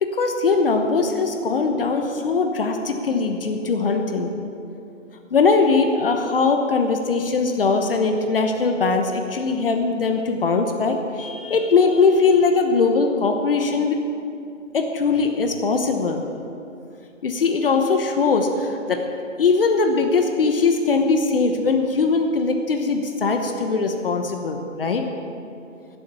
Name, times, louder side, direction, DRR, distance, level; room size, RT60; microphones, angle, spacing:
voice 1, 0.0-4.3 5.3-14.0 14.7-16.2 17.2-19.0 19.4-25.0, left 4 dB, 45° left, 5 dB, 1.1 m, -20 dB
17.0 x 7.7 x 6.8 m, 2.6 s
hypercardioid pair, 155°, 39 cm